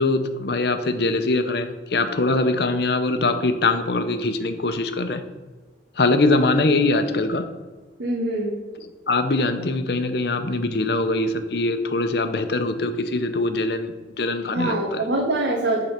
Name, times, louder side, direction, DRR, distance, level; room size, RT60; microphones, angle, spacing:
voice 1, 0.0-5.2 6.0-7.5 9.1-15.0, left 2 dB, 60° left, 8 dB, 0.7 m, -22 dB
voice 2, 8.0-8.5 14.5-15.8, right 2 dB, 90° right, -2 dB, 1.1 m, -24 dB
9.0 x 3.9 x 5.7 m, 1.4 s
head